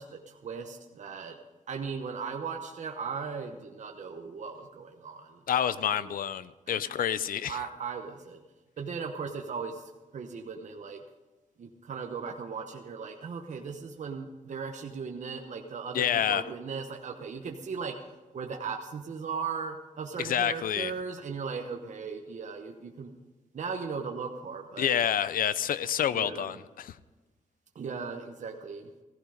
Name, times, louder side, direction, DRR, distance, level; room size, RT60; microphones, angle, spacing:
voice 1, 0.0-1.4 1.7-6.1 6.7-6.9 7.4-8.4 8.8-11.0 11.6-18.0 18.3-23.2 23.5-24.9 26.1-26.6 27.7-28.9, right 5 dB, 60° right, 3 dB, 1.1 m, -38 dB
voice 2, 5.5-7.6 15.9-16.4 20.2-20.9 24.8-27.0, left 9 dB, 85° left, 16 dB, 0.6 m, -28 dB
15.5 x 15.0 x 5.1 m, 1.2 s
wide cardioid pair, 120°, 14 cm